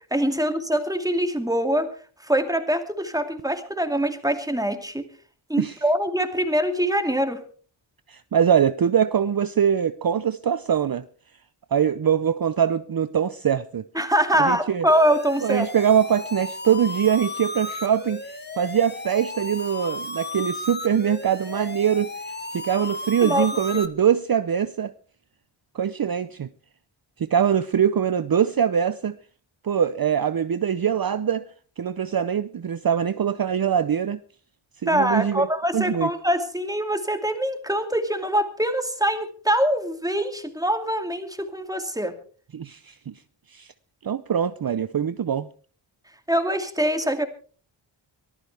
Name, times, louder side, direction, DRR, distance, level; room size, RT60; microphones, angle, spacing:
voice 1, 0.1-1.9 2.2-5.1 5.5-7.4 14.0-15.7 23.2-23.5 34.9-42.1 46.3-47.3, equal, 5° right, 2.4 m, -24 dB
voice 2, 8.1-11.0 11.7-13.8 14.4-14.9 15.4-24.9 25.7-26.5 27.2-29.2 29.6-31.5 31.8-34.2 34.8-35.5 35.7-36.1 42.5-43.2 43.5-43.7 44.0-45.5, right 8 dB, 50° right, 0.7 m, -23 dB
sound 1, 14.9-23.9, left 2 dB, 20° left, 1.4 m, -35 dB
23.5 x 15.0 x 3.4 m
wide cardioid pair, 85°, 48 cm